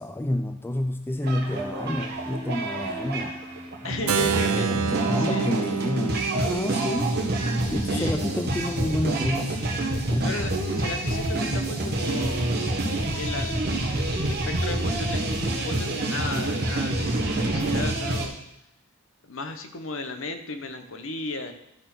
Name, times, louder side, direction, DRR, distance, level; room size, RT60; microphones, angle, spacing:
voice 1, 0.0-3.4 3.8-3.9 4.3-7.1 7.7-9.6 10.1-10.4, left 1 dB, 10° left, 7 dB, 0.3 m, -29 dB
sound 1, 1.2-18.3, right 1 dB, 50° right, 1.7 m, -27 dB
sound 2, 1.4-9.2, equal, 15° right, 2.1 m, -44 dB
voice 2, 3.8-5.5 7.8-8.2 10.2-12.5 13.1-18.3 19.2-21.5, left 3 dB, 65° left, 7 dB, 1.0 m, -35 dB
Keyboard (musical), 4.1-9.9, right 6 dB, 90° right, 0.7 m, -30 dB
12.5 x 4.4 x 6.1 m, 0.81 s
head